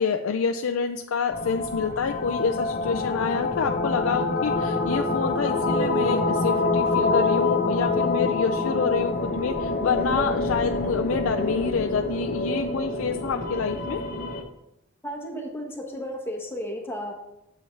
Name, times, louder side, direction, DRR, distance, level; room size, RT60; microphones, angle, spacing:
voice 1, 0.0-14.0, left 5 dB, 80° left, 4 dB, 0.4 m, -27 dB
sound 1, 1.3-14.4, left 3 dB, 45° left, 1.0 m, -26 dB
voice 2, 15.0-17.2, equal, 10° left, 0 dB, 1.4 m, -33 dB
9.1 x 6.9 x 3.3 m, 0.86 s
head